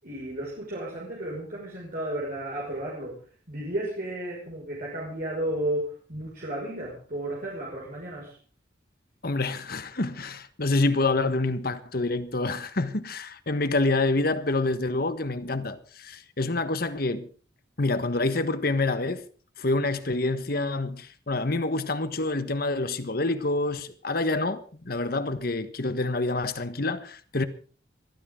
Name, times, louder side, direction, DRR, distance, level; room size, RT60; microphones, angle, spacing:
voice 1, 0.0-3.2 3.5-8.4, right 1 dB, 50° right, 5.9 m, -33 dB
voice 2, 9.2-17.3 17.8-19.2 19.6-27.4, left 2 dB, 55° left, 1.5 m, -27 dB
22.5 x 15.0 x 3.9 m
head